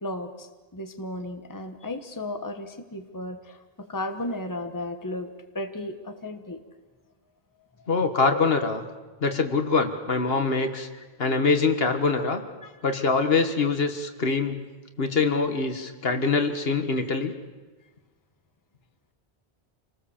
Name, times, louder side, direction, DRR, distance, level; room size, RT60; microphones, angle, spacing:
voice 1, 0.0-5.3 5.5-6.6 8.3-8.4 12.6-12.7, left 1 dB, 20° left, 6 dB, 1.3 m, -34 dB
voice 2, 7.9-8.8 9.2-10.9 11.2-12.4 12.8-14.6 15.0-17.3, left 4 dB, 70° left, 6 dB, 1.7 m, -24 dB
27.5 x 19.0 x 7.2 m, 1.3 s
omnidirectional pair, 1.1 m